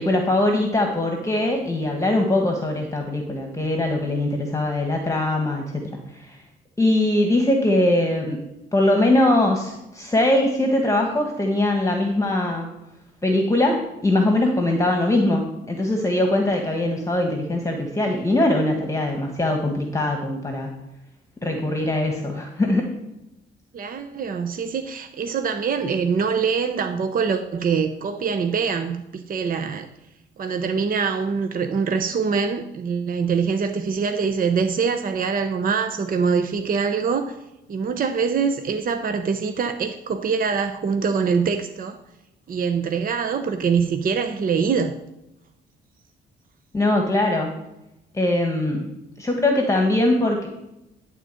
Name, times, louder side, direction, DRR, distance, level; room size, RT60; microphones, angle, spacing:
voice 1, 0.0-6.4 6.8-8.4 8.7-12.7 13.2-20.7 21.4-22.9 46.7-47.5 48.1-48.9 49.2-50.5, left 1 dB, 15° left, 2 dB, 1.4 m, -21 dB
voice 2, 23.7-29.9 30.4-37.4 37.7-42.0 42.5-44.9, right 5 dB, 45° right, 7 dB, 0.8 m, -24 dB
11.5 x 3.9 x 7.7 m, 0.90 s
cardioid pair, 90°, 20 cm